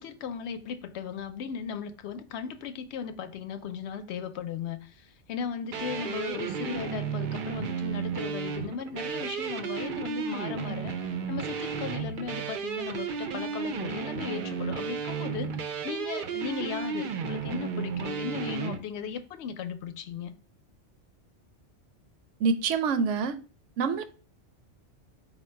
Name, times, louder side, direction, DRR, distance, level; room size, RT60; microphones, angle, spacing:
voice 1, 0.0-20.3, left 7 dB, 75° left, 0.8 m, -37 dB
sound 1, 5.7-18.8, right 6 dB, 60° right, 0.6 m, -33 dB
voice 2, 22.4-23.4 23.8-24.0, right 5 dB, 85° right, 0.9 m, -26 dB
4.7 x 2.2 x 4.5 m
omnidirectional pair, 1.2 m